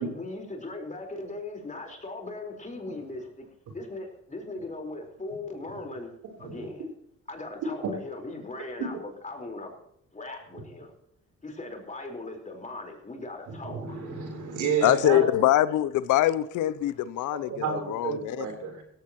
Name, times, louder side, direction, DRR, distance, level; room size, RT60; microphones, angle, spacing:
voice 1, 0.0-3.5 3.7-6.1 6.4-6.9 7.3-9.7 10.1-10.9 11.4-14.0 16.9-17.0, left 2 dB, 25° left, 4.4 m, -39 dB
voice 2, 13.5-15.5 17.3-18.8, right 6 dB, 80° right, 3.8 m, -31 dB
voice 3, 14.8-18.5, left 13 dB, 80° left, 0.7 m, -24 dB
17.5 x 15.0 x 3.0 m
cardioid pair, 90°, 30 cm